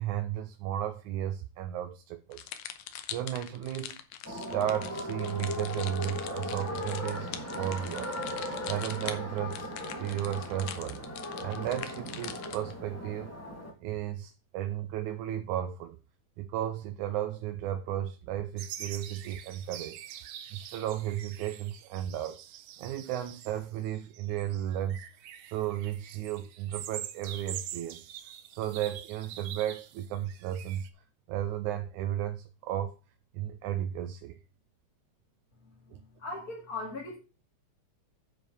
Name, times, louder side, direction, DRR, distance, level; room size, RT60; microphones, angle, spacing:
voice 1, 0.0-2.4 3.1-4.0 4.3-7.3 7.6-8.2 8.7-11.0 11.4-13.3 13.8-16.0 16.4-20.2 20.5-22.4 22.8-25.0 25.5-28.1 28.6-30.9 31.3-33.0 33.3-34.4 35.9-36.0, right 11 dB, 90° right, 7 dB, 2.1 m, -34 dB
sound 1, 2.3-12.7, left 10 dB, 85° left, 2.4 m, -43 dB
sound 2, 4.2-13.7, left 1 dB, 5° left, 1.5 m, -38 dB
sound 3, 18.6-30.9, right 11 dB, 70° right, 1.5 m, -45 dB
voice 2, 36.2-37.2, left 2 dB, 35° left, -2 dB, 2.2 m, -38 dB
9.0 x 5.0 x 6.2 m, 0.31 s
omnidirectional pair, 3.4 m